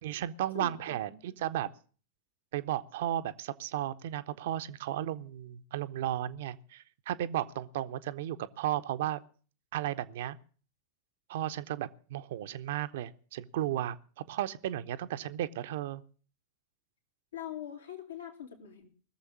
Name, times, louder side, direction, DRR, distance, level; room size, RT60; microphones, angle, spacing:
voice 1, 0.0-1.7 2.5-9.2 9.7-10.4 11.3-16.0, right 12 dB, 55° right, 0.8 m, -34 dB
voice 2, 0.5-1.1 17.3-18.9, left 10 dB, 70° left, 2.6 m, -43 dB
19.5 x 7.2 x 8.4 m
figure-of-eight pair, 90°, 0 cm